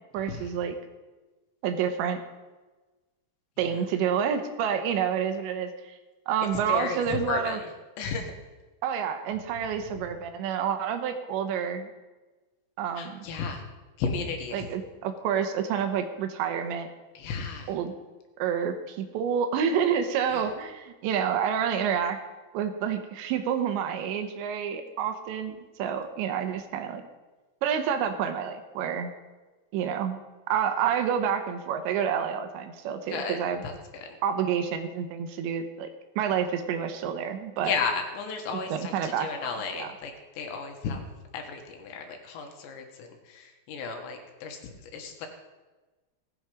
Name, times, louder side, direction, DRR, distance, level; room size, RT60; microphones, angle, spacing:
voice 1, 0.1-0.8 1.6-2.2 3.6-6.0 6.3-7.6 8.8-11.9 12.8-13.3 14.5-16.9 17.7-17.9 18.4-22.2 22.5-27.0 27.6-29.1 29.7-30.2 30.5-33.6 34.2-35.9 36.2-37.7 38.5-39.3 39.7-39.9, right 8 dB, 90° right, 7 dB, 3.4 m, -28 dB
voice 2, 6.7-7.7 8.0-8.3 13.0-13.7 14.0-14.6 17.2-17.7 33.1-33.4 33.6-34.2 37.6-41.0 41.3-45.3, left 5 dB, 85° left, 4 dB, 3.8 m, -34 dB
18.0 x 8.1 x 5.1 m, 1.2 s
omnidirectional pair, 5.0 m